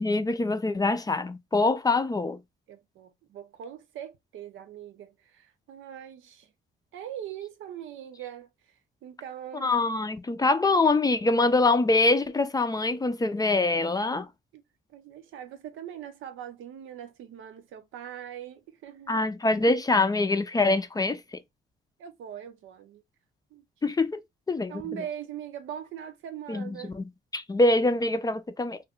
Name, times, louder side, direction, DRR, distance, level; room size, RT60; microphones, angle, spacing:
voice 1, 0.0-2.4 9.6-14.3 19.1-21.4 23.8-24.2 24.5-24.8 26.5-28.8, left 2 dB, 20° left, 0.4 m, -24 dB
voice 2, 2.7-6.5 6.9-8.5 9.0-9.7 14.5-14.6 14.9-19.2 22.0-23.0 23.5-23.6 24.7-26.9, right 10 dB, 80° right, 0.7 m, -41 dB
2.6 x 2.2 x 3.5 m
cardioid pair, 90°, 20 cm